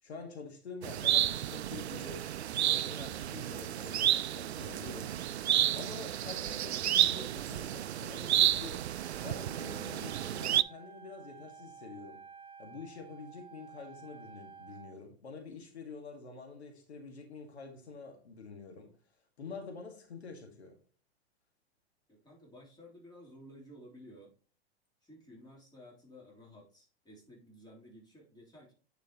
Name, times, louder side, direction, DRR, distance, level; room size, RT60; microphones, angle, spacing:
voice 1, 0.0-5.3 5.7-8.9 9.2-12.2 12.6-18.9 19.4-20.8, left 4 dB, 80° left, 2.0 m, -47 dB
sound 1, 0.8-10.6, right 11 dB, 80° right, 0.5 m, -31 dB
Wind instrument woodwind instrument, 9.0-15.0, right 6 dB, 15° right, 0.7 m, -53 dB
voice 2, 22.1-24.3 25.0-28.7, equal, 15° left, 3.5 m, -54 dB
9.5 x 5.0 x 3.0 m
hypercardioid pair, 100°, 32 cm